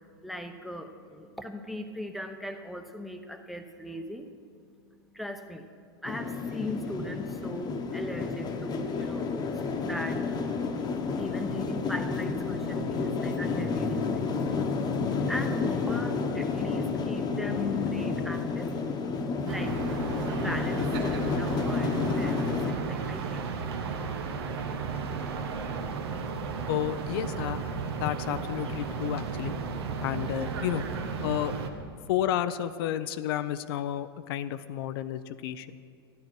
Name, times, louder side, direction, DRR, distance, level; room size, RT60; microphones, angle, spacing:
voice 1, 0.2-4.3 5.1-5.7 6.0-10.4 11.2-14.3 15.3-18.7 19.0-19.9 20.4-23.5, equal, ahead, 6 dB, 0.8 m, -39 dB
sound 1, 6.1-22.7, left 4 dB, 30° left, 1.0 m, -30 dB
sound 2, 12.8-18.2, left 6 dB, 90° left, 1.2 m, -38 dB
sound 3, 19.5-31.7, right 5 dB, 80° right, 1.1 m, -34 dB
voice 2, 26.7-27.6 28.0-29.5 30.0-30.9 31.2-31.5 32.1-35.9, left 12 dB, 70° left, 12 dB, 0.5 m, -31 dB
13.0 x 10.5 x 4.6 m, 2.2 s
hypercardioid pair, 115°, 13 cm